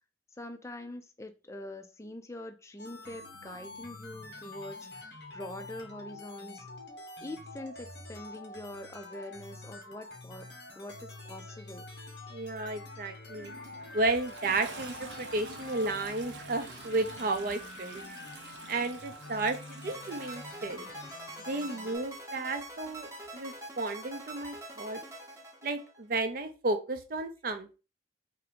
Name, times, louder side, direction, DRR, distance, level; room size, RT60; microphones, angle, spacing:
voice 1, 0.4-6.7 7.2-10.5 10.8-11.8, left 1 dB, 15° left, 0.4 m, -44 dB
sound 1, 2.8-22.0, left 2 dB, 85° left, 1.2 m, -47 dB
voice 2, 12.3-13.5 13.9-18.1 18.7-19.6 19.8-20.9 21.5-25.0 25.6-27.7, right 2 dB, 55° right, 0.5 m, -33 dB
Toilet flush, 13.1-21.6 22.6-22.7, right 4 dB, 85° right, 0.7 m, -48 dB
sound 2, 19.9-26.2, right 1 dB, 15° right, 0.7 m, -45 dB
2.7 x 2.7 x 4.1 m
head